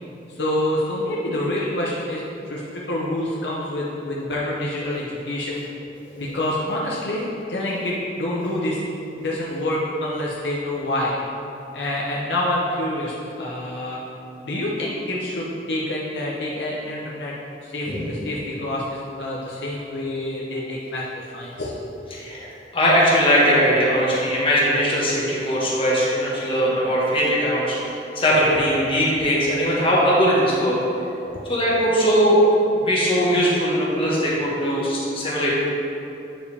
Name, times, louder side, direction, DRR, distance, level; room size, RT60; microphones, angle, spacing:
voice 1, 0.3-5.6 6.2-8.8 9.2-11.2 11.7-14.0 14.4-17.3 17.6-21.7, left 1 dB, 65° left, -5 dB, 0.8 m, -27 dB
voice 2, 22.1-22.5 22.7-30.8 31.5-32.5 32.9-35.5, equal, 30° left, -7 dB, 1.5 m, -20 dB
8.9 x 4.8 x 3.4 m, 2.9 s
head